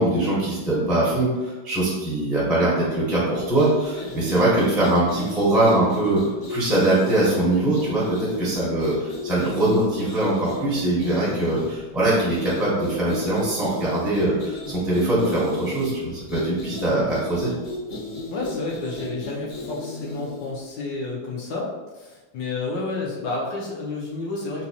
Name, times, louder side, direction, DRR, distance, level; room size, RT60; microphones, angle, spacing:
voice 1, 0.0-6.2 6.5-17.5, right 1 dB, ahead, -7 dB, 0.5 m, -22 dB
sound 1, 3.5-20.5, left 1 dB, 50° left, 1.0 m, -34 dB
voice 2, 18.3-24.6, left 3 dB, 70° left, -3 dB, 1.3 m, -30 dB
4.0 x 2.7 x 2.8 m, 1.2 s
omnidirectional pair, 2.2 m